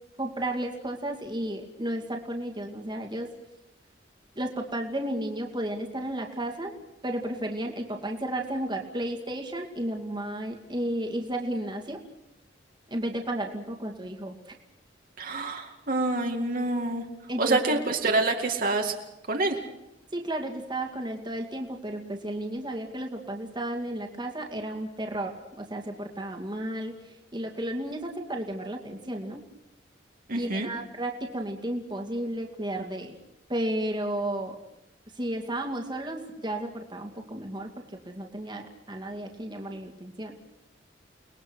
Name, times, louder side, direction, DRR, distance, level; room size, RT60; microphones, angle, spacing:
voice 1, 0.2-3.3 4.4-6.7 7.0-12.0 12.9-14.5 17.3-17.8 20.1-29.4 30.3-33.2 33.5-34.6 35.2-40.3, right 1 dB, 25° right, 2 dB, 2.4 m, -33 dB
voice 2, 15.2-17.0 17.4-18.9 19.3-19.6 30.3-30.7, right 2 dB, 50° right, 2 dB, 2.2 m, -26 dB
30.0 x 20.5 x 6.4 m, 0.89 s
head